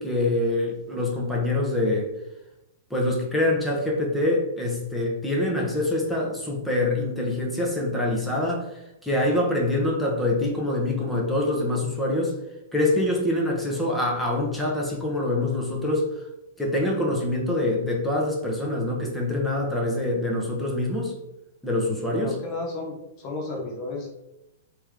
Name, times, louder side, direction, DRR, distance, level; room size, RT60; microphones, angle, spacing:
voice 1, 0.0-2.1 2.9-8.7 9.0-12.3 12.7-16.1 16.6-21.1 21.6-22.3, left 1 dB, 5° left, -3 dB, 1.0 m, -25 dB
voice 2, 22.1-24.1, left 2 dB, 35° left, 0 dB, 0.9 m, -33 dB
3.3 x 3.0 x 3.7 m, 0.90 s
hypercardioid pair, 115°, 0 cm